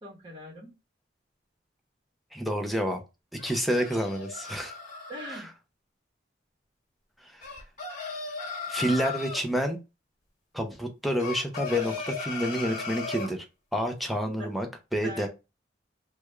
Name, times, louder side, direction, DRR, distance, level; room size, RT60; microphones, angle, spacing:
voice 1, 0.0-0.7 5.1-5.5 14.4-14.5 14.9-15.3, equal, 30° right, -3 dB, 1.1 m, -41 dB
voice 2, 2.3-3.0 3.4-4.8 7.2-7.4 8.7-9.8 10.5-13.4 13.7-14.7 14.9-15.3, equal, ahead, 3 dB, 0.6 m, -28 dB
sound 1, 3.4-5.4 7.4-9.4 11.2-13.3, left 4 dB, 45° left, 1.2 m, -36 dB
3.3 x 2.3 x 3.1 m, 0.26 s
head